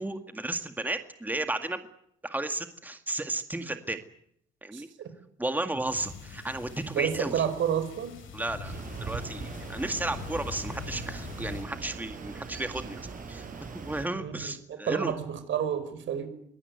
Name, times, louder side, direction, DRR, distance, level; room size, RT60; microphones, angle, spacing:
voice 1, 0.0-1.8 2.2-4.0 4.6-4.9 5.4-7.4 8.3-8.7 9.0-13.5 13.7-15.2, right 2 dB, 10° right, 7 dB, 2.0 m, -33 dB
sound 1, 5.9-11.6, left 6 dB, 85° left, 7.4 m, -43 dB
voice 2, 6.9-8.1 14.2-14.3 14.7-16.3, right 9 dB, 70° right, 10 dB, 5.4 m, -30 dB
sound 2, 8.6-14.1, right 4 dB, 45° right, 7.5 m, -40 dB
24.0 x 18.5 x 9.5 m, 0.71 s
cardioid pair, 90°, 20 cm